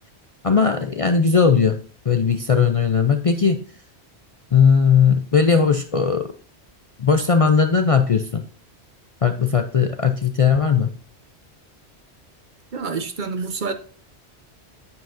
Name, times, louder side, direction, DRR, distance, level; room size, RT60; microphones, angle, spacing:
voice 1, 0.4-1.8 2.1-3.6 4.5-6.3 7.0-8.4 9.2-10.9, left 6 dB, 45° left, 0.5 m, -18 dB
voice 2, 12.7-13.7, right 4 dB, 50° right, 0.7 m, -27 dB
9.5 x 7.3 x 2.6 m
omnidirectional pair, 1.1 m